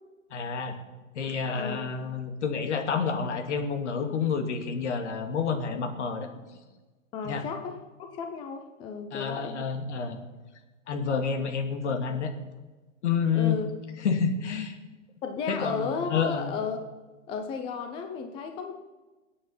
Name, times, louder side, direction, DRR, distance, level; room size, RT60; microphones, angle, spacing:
voice 1, 0.3-0.7 1.1-6.3 7.2-7.4 9.1-10.2 10.9-12.3 13.0-13.6 14.0-14.8 15.5-16.5, left 6 dB, 60° left, 6 dB, 2.4 m, -29 dB
voice 2, 7.1-9.6 13.3-13.7 15.2-16.8 17.3-18.7, left 5 dB, 15° left, 6 dB, 0.6 m, -34 dB
21.5 x 8.6 x 5.7 m, 1.2 s
hypercardioid pair, 140°, 40 cm